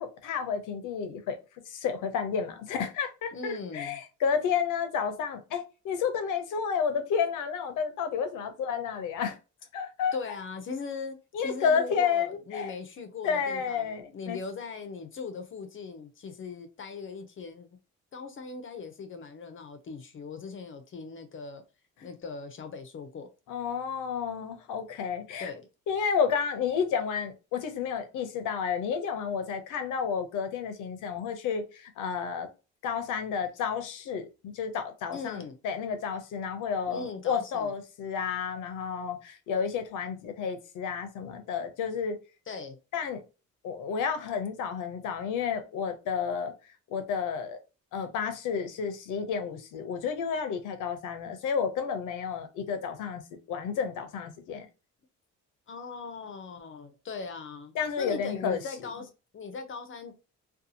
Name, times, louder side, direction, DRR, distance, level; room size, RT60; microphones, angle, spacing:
voice 1, 0.0-1.4 1.7-9.4 9.7-10.2 11.3-12.7 13.2-14.4 23.5-25.5 25.9-32.5 32.8-42.2 42.9-43.2 43.6-46.5 46.9-47.6 47.9-53.2 53.5-54.7 57.7-58.6, left 6 dB, 85° left, 0.6 m, -31 dB
voice 2, 3.3-4.0 10.1-17.7 18.1-21.6 22.0-23.3 25.4-25.7 35.1-35.6 36.9-37.7 41.3-41.4 42.5-42.8 55.7-60.1, left 4 dB, 40° left, 0.5 m, -40 dB
2.6 x 2.3 x 2.6 m
cardioid pair, 90°, 30 cm